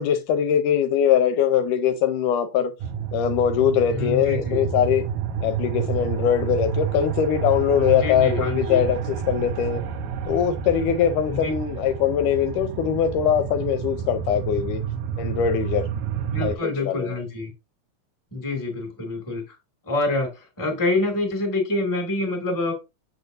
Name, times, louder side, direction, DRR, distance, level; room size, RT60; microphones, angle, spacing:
voice 1, 0.0-2.7 3.1-5.1 5.4-9.8 10.3-14.8 15.2-15.9 16.4-17.1, left 9 dB, 80° left, 2.1 m, -22 dB
sound 1, 2.8-16.6, right 8 dB, 75° right, 1.7 m, -29 dB
voice 2, 3.9-4.6 7.7-8.8 11.3-11.5 16.3-17.5 18.3-19.6 19.8-22.7, left 2 dB, 10° left, 1.3 m, -26 dB
6.9 x 6.0 x 2.6 m
omnidirectional pair, 3.9 m